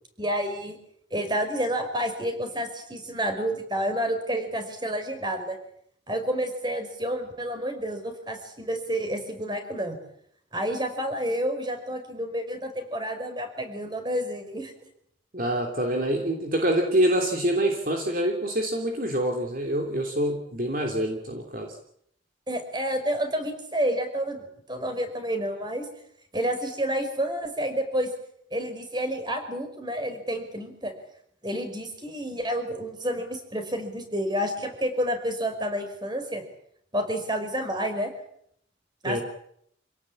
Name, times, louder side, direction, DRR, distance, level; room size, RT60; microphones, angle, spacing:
voice 1, 0.2-0.8 1.1-5.6 6.1-10.0 10.5-14.7 22.5-25.9 26.3-28.1 28.5-30.9 31.4-36.4 36.9-38.1 39.0-39.2, equal, 25° right, 6 dB, 5.2 m, -29 dB
voice 2, 15.3-21.7 39.0-39.2, right 1 dB, 45° right, 2 dB, 3.2 m, -26 dB
27.5 x 17.5 x 8.8 m, 0.70 s
head